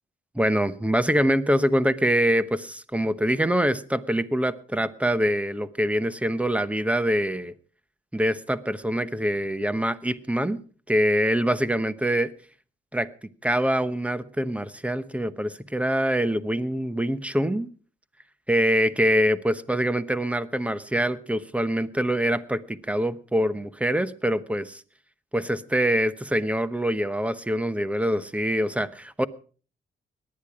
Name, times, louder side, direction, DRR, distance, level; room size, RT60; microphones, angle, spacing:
voice 1, 0.3-7.5 8.1-10.6 10.9-12.3 12.9-13.1 13.4-17.7 18.5-24.8 25.3-29.3, equal, 5° right, 15 dB, 1.0 m, -24 dB
18.5 x 10.5 x 4.9 m, 0.39 s
cardioid pair, 90°, 20 cm